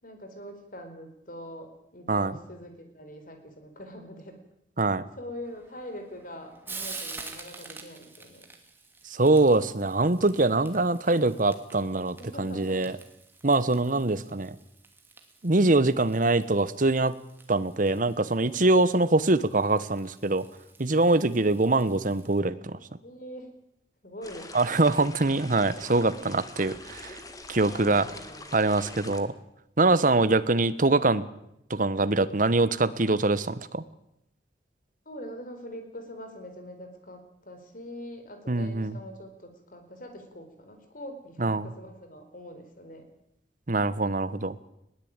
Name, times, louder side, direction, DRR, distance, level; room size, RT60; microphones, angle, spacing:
voice 1, 0.0-4.4 5.2-8.5 12.2-12.9 13.8-14.2 18.1-18.5 19.0-19.2 20.9-21.4 23.0-23.5 24.0-24.8 25.7-26.2 27.5-28.7 35.1-43.1, equal, 50° left, 6 dB, 4.4 m, -44 dB
Frying (food), 5.4-22.4, right 3 dB, 10° right, 2.7 m, -48 dB
voice 2, 9.1-12.9 13.4-14.5 15.4-17.1 17.5-20.4 20.8-22.8 24.5-27.2 27.5-28.1 28.5-29.3 29.8-31.2 31.7-33.8 38.5-39.0 41.4-41.7 43.7-44.6, right 2 dB, 45° right, 14 dB, 1.1 m, -23 dB
sound 1, 24.2-29.2, left 2 dB, 20° left, 2.0 m, -44 dB
21.0 x 17.5 x 8.9 m, 0.81 s
head